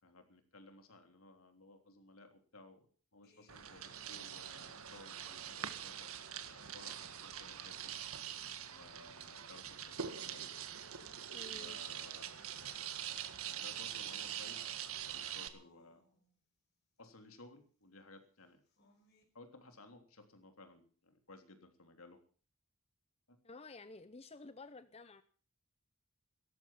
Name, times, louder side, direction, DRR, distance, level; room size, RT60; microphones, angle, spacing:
voice 1, 0.0-2.9 3.1-6.1 6.7-8.0 8.7-10.7 11.5-12.5 13.4-14.8 15.1-16.0 17.0-18.6 19.3-22.2 23.3-23.4, left 2 dB, 70° left, 6 dB, 3.3 m, -58 dB
sound 1, 3.2-8.3 9.2-9.3 10.4-16.3 18.5-19.2, left 2 dB, 50° left, 5.2 m, -69 dB
sound 2, 3.5-15.5, right 9 dB, 70° right, 1.7 m, -44 dB
voice 2, 11.3-11.8 23.4-25.2, left 3 dB, 30° left, 13 dB, 0.7 m, -52 dB
17.5 x 14.0 x 5.8 m, 0.42 s
head